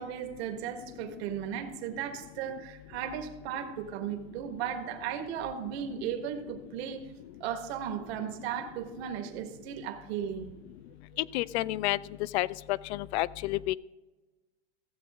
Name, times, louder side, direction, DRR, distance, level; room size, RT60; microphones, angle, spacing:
voice 1, 0.0-7.1 7.4-10.5, right 9 dB, 65° right, 5 dB, 1.6 m, -36 dB
voice 2, 11.2-12.0 12.3-13.7, left 17 dB, 70° left, 19 dB, 0.5 m, -30 dB
15.0 x 8.0 x 3.6 m, 1.2 s
supercardioid pair, 145°, 34 cm